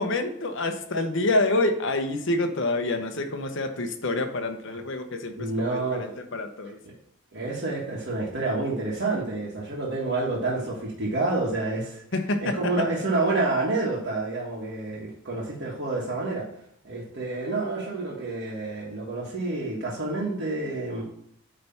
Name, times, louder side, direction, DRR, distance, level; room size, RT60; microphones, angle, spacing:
voice 1, 0.0-6.8 12.1-12.8, left 2 dB, 55° left, 6 dB, 0.8 m, -27 dB
voice 2, 5.4-6.1 6.8-6.9 7.3-12.0 12.4-16.5 16.8-21.0, right 2 dB, 50° right, -6 dB, 1.5 m, -28 dB
8.7 x 3.3 x 5.7 m, 0.70 s
head